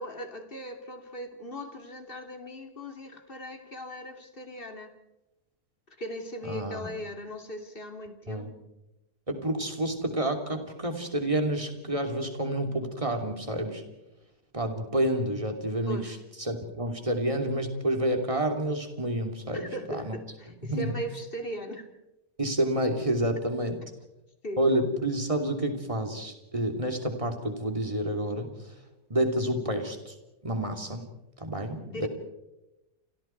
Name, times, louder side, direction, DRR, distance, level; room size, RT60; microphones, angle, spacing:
voice 1, 0.0-4.9 6.0-8.7 15.8-16.2 19.5-21.9 24.4-24.6 31.9-32.1, equal, 35° left, 5 dB, 2.9 m, -39 dB
voice 2, 6.5-6.9 8.3-8.5 9.3-13.8 14.5-20.2 20.7-21.0 22.4-23.8 24.6-28.5 29.1-30.1 30.4-31.1 31.4-32.1, right 1 dB, 20° right, 5 dB, 3.1 m, -29 dB
30.0 x 27.0 x 4.6 m, 0.96 s
omnidirectional pair, 1.7 m